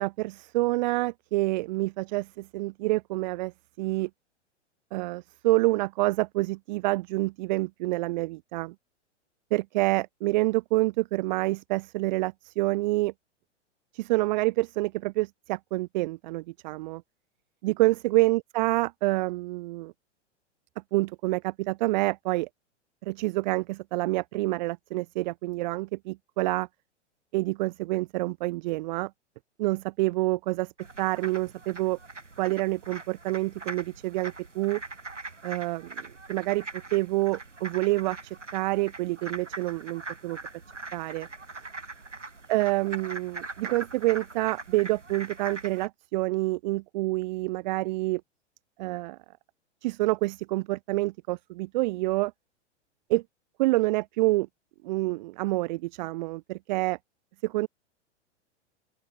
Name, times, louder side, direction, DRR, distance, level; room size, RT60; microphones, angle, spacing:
voice 1, 0.0-3.5 3.8-4.1 4.9-8.7 9.5-13.1 13.9-17.0 17.6-19.9 20.9-22.5 23.0-26.7 27.3-29.1 29.6-30.7 31.0-32.0 32.4-34.8 35.4-40.4 40.9-41.3 42.5-48.2 48.8-49.2 49.8-52.3 53.1-53.2 53.6-54.5 54.8-57.0 57.4-57.7, right 20 dB, 40° right, 0.9 m, -27 dB
sound 1, 30.8-45.9, right 3 dB, 80° right, 5.4 m, -42 dB
open air
figure-of-eight pair, 100°, 36 cm